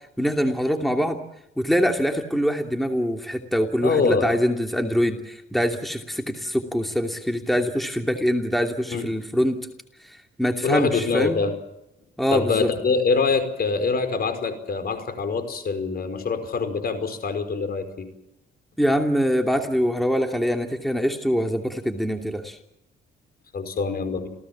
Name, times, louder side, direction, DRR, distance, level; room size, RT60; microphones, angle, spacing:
voice 1, 0.2-1.2 1.6-9.7 10.4-11.4 12.2-12.7 18.8-22.6, equal, ahead, 4 dB, 2.8 m, -24 dB
voice 2, 3.8-4.4 8.9-9.1 10.6-11.5 12.3-18.1 23.5-24.3, left 4 dB, 50° left, 9 dB, 5.2 m, -24 dB
28.5 x 17.0 x 7.4 m, 0.87 s
cardioid pair, 90°, 20 cm